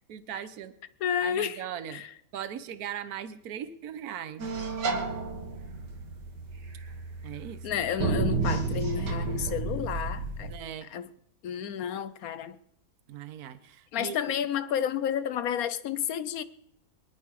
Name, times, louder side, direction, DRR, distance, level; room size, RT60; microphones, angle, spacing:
voice 1, 0.1-0.8 1.2-2.0 2.3-4.5 7.2-7.8 10.5-10.9 13.1-14.2, right 9 dB, 65° right, 1.4 m, -39 dB
voice 2, 1.0-1.6 1.9-2.1 7.6-10.5 10.9-11.1 11.4-12.6 13.9-16.4, left 9 dB, 65° left, 1.1 m, -31 dB
sound 1, 4.4-10.5, right 4 dB, 90° right, 2.2 m, -32 dB
24.0 x 10.5 x 4.7 m
omnidirectional pair, 1.8 m